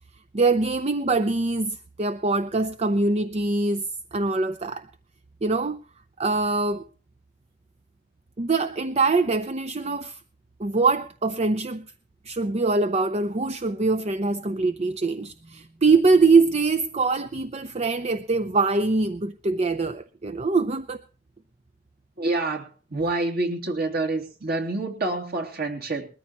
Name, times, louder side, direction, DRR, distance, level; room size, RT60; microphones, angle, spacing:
voice 1, 0.3-4.9 5.4-5.8 6.2-6.8 8.4-10.2 10.6-11.9 12.2-21.0, right 3 dB, 35° right, 0.6 m, -23 dB
voice 2, 22.2-26.1, right 2 dB, 55° right, 2.9 m, -27 dB
21.0 x 14.0 x 3.1 m
head